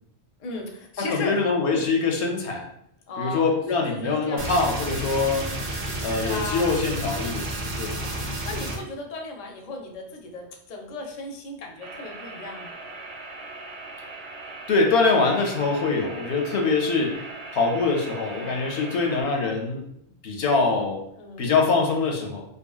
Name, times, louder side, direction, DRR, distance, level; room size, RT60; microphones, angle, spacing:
voice 1, 0.4-1.4 1.8-2.0 3.1-4.5 4.8-4.9 5.7-6.8 7.9-12.7 18.2-18.6 21.2-21.5, left 2 dB, 55° left, 1 dB, 0.5 m, -36 dB
voice 2, 1.0-2.6 3.2-5.5 6.0-7.5 7.8-7.9 14.7-17.2 17.5-19.8 20.2-21.0 21.4-22.5, left 4 dB, 80° left, 2 dB, 0.9 m, -23 dB
sound 1, 4.4-8.8, right 1 dB, 50° right, 0.5 m, -31 dB
sound 2, 11.8-19.2, right 3 dB, 75° right, 0.8 m, -40 dB
2.7 x 2.5 x 2.3 m, 0.75 s
omnidirectional pair, 1.1 m